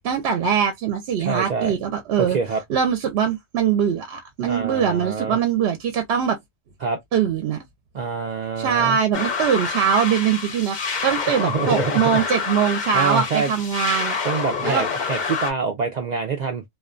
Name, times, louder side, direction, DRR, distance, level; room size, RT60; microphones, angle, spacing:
voice 1, 0.0-2.4 2.7-6.4 7.1-7.6 8.6-14.2 14.6-14.8, right 8 dB, 65° right, 0.7 m, -22 dB
voice 2, 1.2-1.7 2.2-2.6 4.5-5.4 6.8-7.0 7.9-9.0 11.4-12.2 12.9-13.5 14.2-16.6, right 5 dB, 80° right, 0.3 m, -26 dB
sound 1, 9.1-15.5, left 5 dB, 45° left, 0.7 m, -27 dB
2.4 x 2.1 x 2.3 m
omnidirectional pair, 1.3 m